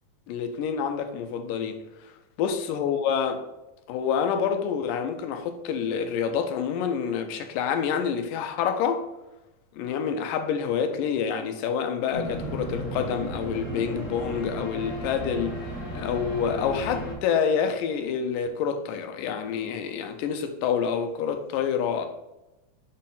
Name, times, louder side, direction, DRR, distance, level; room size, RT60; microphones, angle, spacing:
voice 1, 0.3-1.8 2.4-3.4 3.9-9.0 9.8-15.6 15.9-22.1, left 7 dB, 85° left, 6 dB, 2.3 m, -27 dB
sound 1, 12.1-17.1, equal, 30° left, 1.4 m, -34 dB
6.4 x 4.2 x 4.0 m, 0.98 s
omnidirectional pair, 3.9 m